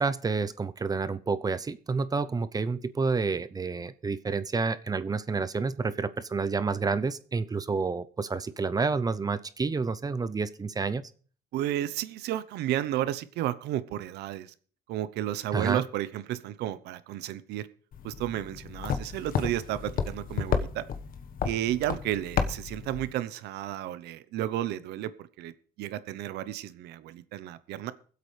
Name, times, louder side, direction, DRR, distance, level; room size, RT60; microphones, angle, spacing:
voice 1, 0.0-11.1 15.5-15.8, right 4 dB, 20° right, 13 dB, 0.7 m, -29 dB
voice 2, 11.5-14.5 14.9-17.7 18.0-20.9 21.4-25.1 25.4-25.5 25.8-27.9, right 13 dB, 80° right, 14 dB, 0.9 m, -32 dB
sound 1, 17.9-23.1, left 6 dB, 55° left, 1.3 m, -32 dB
23.0 x 8.1 x 3.3 m, 0.43 s
cardioid pair, 110°, 17 cm